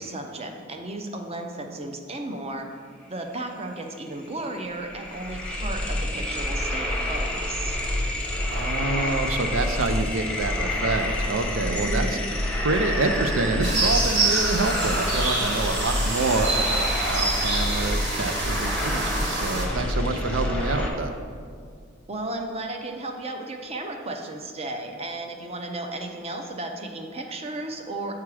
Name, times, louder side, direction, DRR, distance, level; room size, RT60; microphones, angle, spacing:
voice 1, 0.0-2.7 3.1-7.8 11.8-12.3 22.1-28.1, right 2 dB, 30° right, 4 dB, 0.6 m, -34 dB
sound 1, 3.9-4.0 4.2-20.9, left 1 dB, 5° left, 0.8 m, -28 dB
voice 2, 8.5-12.1 12.6-21.1, right 3 dB, 85° right, 7 dB, 0.6 m, -27 dB
sound 2, 13.6-19.6, right 2 dB, 65° right, 1.2 m, -27 dB
7.3 x 4.7 x 4.8 m, 2.1 s
head